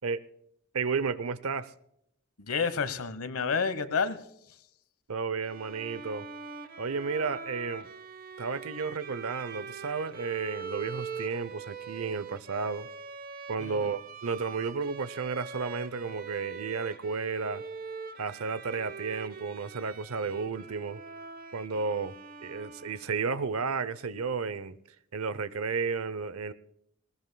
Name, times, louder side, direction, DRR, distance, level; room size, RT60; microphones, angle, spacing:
voice 1, 0.7-1.7 5.1-6.3 6.8-7.9 8.4-12.9 13.5-17.6 18.2-21.0 21.5-22.1 22.4-24.8 25.1-26.5, right 5 dB, 75° right, 0.7 m, -32 dB
voice 2, 2.4-4.2 13.6-13.8, left 5 dB, 80° left, 1.2 m, -29 dB
Bowed string instrument, 5.4-23.2, right 5 dB, 45° right, 0.8 m, -43 dB
20.5 x 18.5 x 2.3 m
head